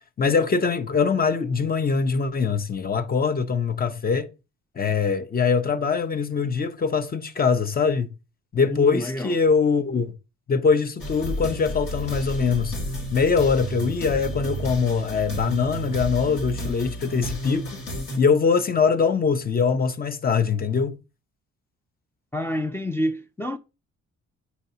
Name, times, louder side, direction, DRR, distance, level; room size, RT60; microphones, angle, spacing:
voice 1, 0.2-4.3 4.8-8.1 8.5-10.1 10.5-12.8 13.1-17.7 18.2-21.0, left 5 dB, 30° left, 0.7 m, -22 dB
voice 2, 8.7-9.3 22.3-23.6, left 1 dB, 10° left, 0.4 m, -28 dB
sound 1, 11.0-18.2, right 1 dB, 90° left, 2.6 m, -32 dB
8.2 x 5.3 x 2.7 m
cardioid pair, 90°, 30 cm